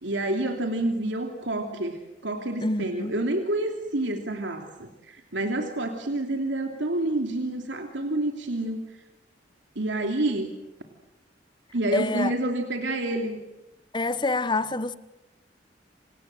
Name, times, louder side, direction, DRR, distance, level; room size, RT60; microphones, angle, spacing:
voice 1, 0.0-8.8 9.7-10.5 11.7-13.4, right 1 dB, 85° right, 3.0 m, -28 dB
voice 2, 2.6-3.2 11.9-12.3 13.9-14.9, left 2 dB, 25° left, 1.1 m, -27 dB
28.5 x 27.0 x 7.7 m
head